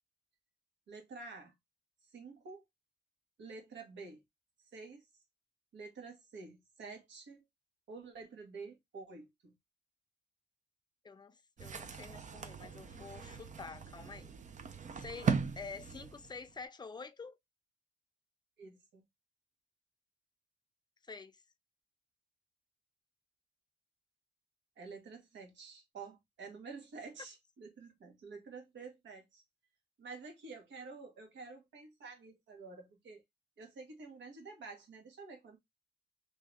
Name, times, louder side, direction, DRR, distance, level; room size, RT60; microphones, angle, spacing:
voice 1, 0.9-1.5 2.1-2.6 3.4-4.2 4.6-5.0 5.7-7.4 7.9-9.5 18.6-19.0 24.8-29.4 30.0-33.2 33.6-35.6, right 4 dB, 70° right, 1.6 m, -49 dB
voice 2, 11.0-14.3 14.9-17.4 21.0-21.4, left 4 dB, 20° left, 0.6 m, -48 dB
sound 1, 11.6-16.6, right 6 dB, 40° right, 0.6 m, -39 dB
2.8 x 2.8 x 3.4 m
cardioid pair, 90°, 20 cm